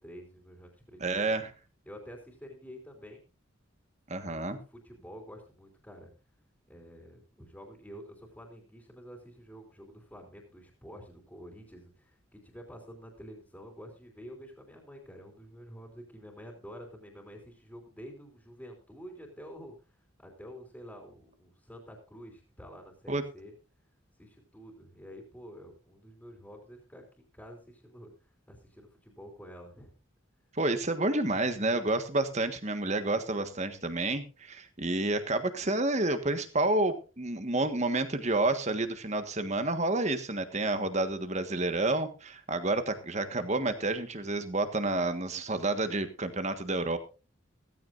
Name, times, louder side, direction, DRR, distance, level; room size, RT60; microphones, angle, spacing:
voice 1, 0.0-1.3 1.8-3.2 4.1-6.1 6.7-19.9 20.2-23.5 24.2-29.9, equal, 5° left, 1 dB, 3.4 m, -49 dB
voice 2, 1.0-1.5 4.1-4.6 23.1-23.2 30.5-47.0, right 2 dB, 35° right, 9 dB, 1.5 m, -29 dB
16.5 x 15.0 x 2.6 m, 0.33 s
head